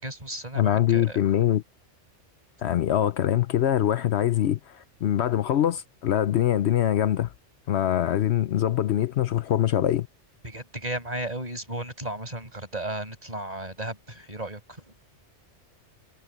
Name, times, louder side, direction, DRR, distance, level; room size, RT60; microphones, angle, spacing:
voice 1, 0.0-1.2 10.4-14.6, right 1 dB, 35° right, 5.6 m, -34 dB
voice 2, 0.5-1.6 2.6-7.3 7.7-10.1, left 11 dB, 70° left, 0.9 m, -23 dB
omnidirectional pair, 1.2 m